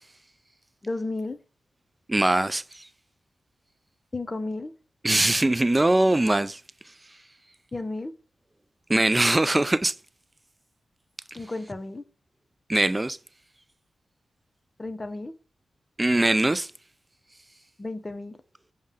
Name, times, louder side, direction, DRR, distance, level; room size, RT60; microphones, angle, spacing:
voice 1, 0.8-1.4 4.1-4.7 7.7-8.1 11.4-12.0 14.8-15.3 17.8-18.4, left 2 dB, 35° left, 0.5 m, -33 dB
voice 2, 2.1-2.9 5.0-6.6 8.9-9.9 12.7-13.2 16.0-16.7, right 2 dB, 25° right, 0.3 m, -22 dB
5.2 x 2.1 x 3.6 m
supercardioid pair, 40°, 0 cm